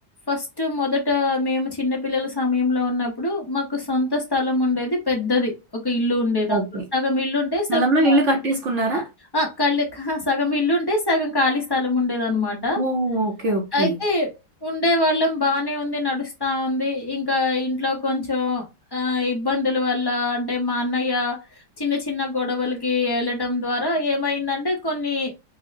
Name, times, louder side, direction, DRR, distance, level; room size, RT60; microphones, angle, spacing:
voice 1, 0.3-8.2 9.3-12.8 13.7-14.3 14.6-18.6 18.9-25.3, left 2 dB, 30° left, 0.4 m, -23 dB
voice 2, 6.5-6.8 7.7-9.1 12.8-14.0, right 1 dB, 55° right, 0.9 m, -21 dB
5.3 x 2.0 x 2.5 m
omnidirectional pair, 1.9 m